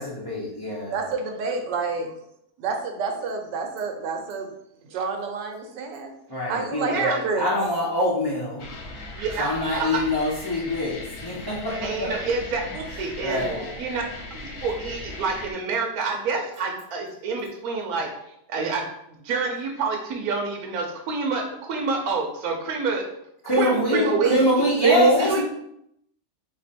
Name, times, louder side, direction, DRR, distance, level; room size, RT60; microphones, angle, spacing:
voice 1, 0.0-1.0 6.3-8.7 9.4-12.1 13.2-13.6 23.4-25.4, left 1 dB, 40° left, -7 dB, 0.3 m, -25 dB
voice 2, 0.9-2.1 2.6-4.5 4.9-6.1 6.5-7.5 12.7-12.8 13.3-13.7 23.9-24.4 24.8-25.4, right 4 dB, 85° right, 4 dB, 1.4 m, -26 dB
voice 3, 6.8-7.2 9.2-9.9 11.7-12.6 13.0-13.4 13.8-14.0 14.4-18.1 18.5-18.8 19.2-23.1 23.6-24.4 25.3-25.4, right 4 dB, 65° right, 1 dB, 1.1 m, -28 dB
sound 1, 8.6-15.5, left 2 dB, 60° left, 1.0 m, -38 dB
3.7 x 2.9 x 4.2 m, 0.76 s
omnidirectional pair, 1.8 m